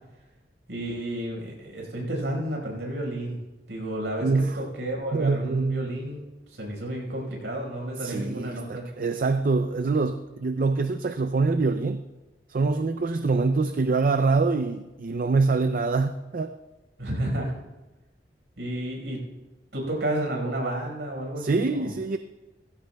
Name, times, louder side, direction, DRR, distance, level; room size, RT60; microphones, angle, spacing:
voice 1, 0.7-3.4 3.7-8.8 17.0-17.5 18.6-19.2 19.7-21.9, right 1 dB, 80° right, 0 dB, 4.9 m, -31 dB
voice 2, 4.2-4.6 5.1-5.9 8.0-12.0 12.5-16.5 21.4-22.2, right 3 dB, 50° right, 9 dB, 0.5 m, -25 dB
18.0 x 15.5 x 2.3 m, 1.1 s
head